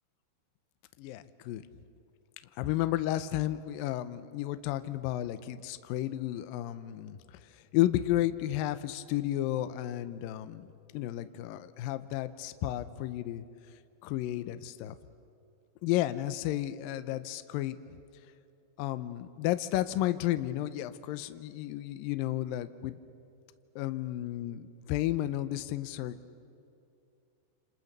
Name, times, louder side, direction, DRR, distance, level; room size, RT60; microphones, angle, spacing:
voice 1, 1.0-1.6 2.6-7.2 7.7-10.7 10.9-13.4 14.0-15.0 15.8-17.8 18.8-22.9 23.8-26.2, left 14 dB, 90° left, 11 dB, 2.0 m, -32 dB
28.5 x 27.5 x 6.7 m, 2.6 s
omnidirectional pair, 5.1 m